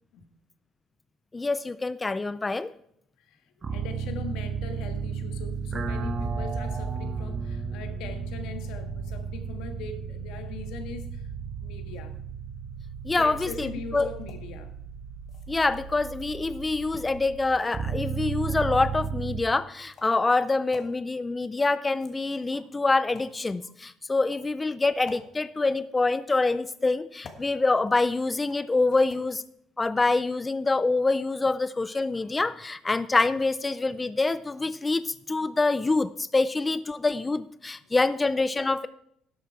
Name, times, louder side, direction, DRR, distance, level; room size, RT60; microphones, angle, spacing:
voice 1, 1.3-2.7 13.0-14.1 15.5-29.4 29.8-38.9, left 3 dB, 15° left, 14 dB, 0.3 m, -26 dB
sound 1, 3.6-19.4, right 5 dB, 25° right, 0.9 m, -34 dB
voice 2, 3.7-11.3 11.6-12.2 13.1-14.7, left 5 dB, 85° left, 7 dB, 1.5 m, -41 dB
sound 2, 14.2-14.4 15.2-15.9 16.9-17.8 18.8-19.0 19.8-20.2 20.7-20.9 21.8-22.5 23.1-23.4 24.2-24.5 25.1-25.2 26.3-26.7 27.2-27.5 28.5-28.8 29.1-29.2, left 4 dB, 35° left, 1.6 m, -49 dB
11.5 x 8.2 x 4.6 m, 0.71 s
cardioid pair, 150°, 0 cm